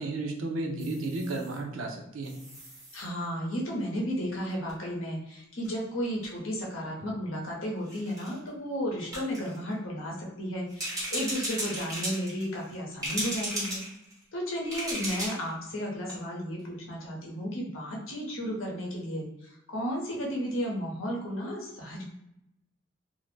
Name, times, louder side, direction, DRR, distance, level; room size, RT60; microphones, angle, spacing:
voice 1, 0.0-2.3, right 2 dB, 80° right, 3 dB, 0.5 m, -33 dB
sound 1, 0.8-1.6 2.2-3.0 4.5-4.7 5.6-5.7 6.0-6.3 7.0-7.1 7.9-8.4 9.1-9.6 10.7-12.7 13.0-14.2 14.7-15.5 15.8-15.9 16.1-16.2, right 1 dB, 20° right, 1.1 m, -36 dB
voice 2, 2.9-13.8 14.3-22.1, equal, 80° left, -2 dB, 0.8 m, -33 dB
2.4 x 2.0 x 3.1 m, 0.83 s
head